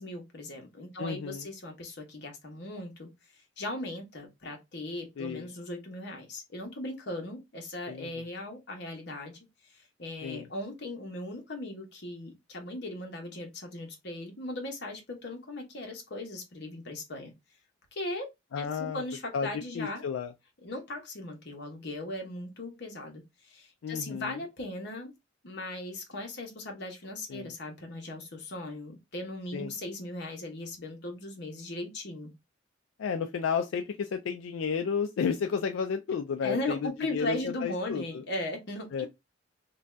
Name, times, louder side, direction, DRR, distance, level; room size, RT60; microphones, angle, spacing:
voice 1, 0.0-3.1 3.6-17.3 17.9-18.3 18.6-20.1 20.6-25.1 25.4-32.3 36.4-39.1, left 1 dB, 55° left, 0.9 m, -38 dB
voice 2, 1.0-1.5 5.2-5.5 7.9-8.3 10.2-10.5 18.5-19.0 19.3-19.5 19.7-20.3 23.8-24.4 27.3-27.5 29.5-29.7 33.0-38.2 38.9-39.1, left 6 dB, 80° left, 0.3 m, -32 dB
2.6 x 2.3 x 3.2 m
head